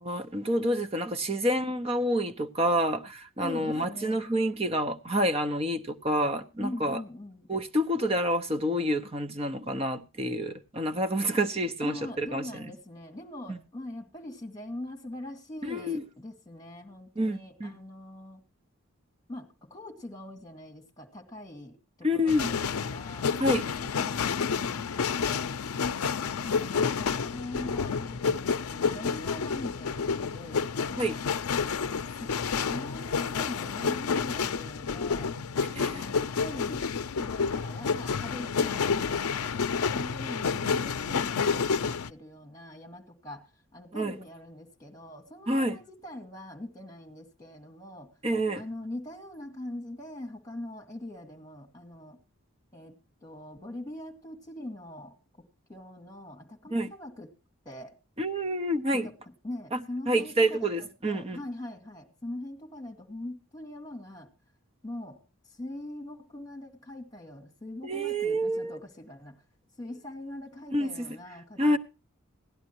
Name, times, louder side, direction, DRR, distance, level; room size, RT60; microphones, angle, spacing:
voice 1, 0.0-7.0 7.5-12.7 13.5-13.6 15.6-16.0 17.2-17.7 22.0-22.5 23.4-23.6 31.0-31.2 35.7-36.1 44.0-44.1 45.5-45.8 48.2-48.6 56.7-56.9 58.2-59.1 59.7-61.4 67.8-68.8 70.7-71.1 71.6-71.8, equal, 25° right, 0.9 m, -28 dB
voice 2, 3.4-4.2 6.6-7.5 11.8-18.4 19.3-23.4 23.8-25.6 26.4-31.2 31.7-35.3 35.8-36.9 37.2-43.5 43.7-48.1 48.5-52.2 52.7-52.9 53.2-57.3 57.7-57.9 58.9-59.1 59.4-64.3 64.8-65.2 65.6-69.4 69.8-71.8, left 1 dB, 15° left, 2.1 m, -42 dB
sound 1, 22.3-42.1, left 5 dB, 90° left, 0.5 m, -29 dB
17.0 x 11.0 x 2.9 m
head